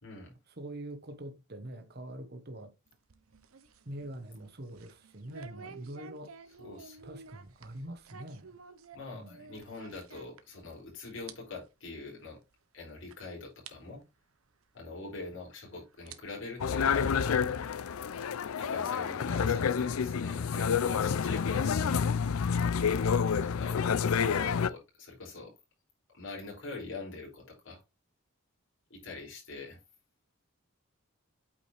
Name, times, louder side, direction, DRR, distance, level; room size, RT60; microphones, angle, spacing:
voice 1, 0.0-0.4 6.6-7.0 8.9-12.4 12.7-14.0 14.7-17.6 18.5-22.1 23.4-25.5 26.1-27.8 28.9-29.8, left 3 dB, 60° left, 4.6 m, -44 dB
voice 2, 0.6-2.7 3.8-6.3 7.0-8.6 9.1-9.4, right 1 dB, 45° right, 1.2 m, -44 dB
sound 1, 2.9-10.8 11.1-11.3 11.7-11.8 12.5-12.6 13.1-13.2 13.7-13.8 15.1-15.2 15.9-17.3, right 5 dB, 85° right, 1.0 m, -52 dB
sound 2, 16.6-24.7, left 6 dB, 85° left, 0.5 m, -28 dB
8.7 x 5.0 x 3.3 m
head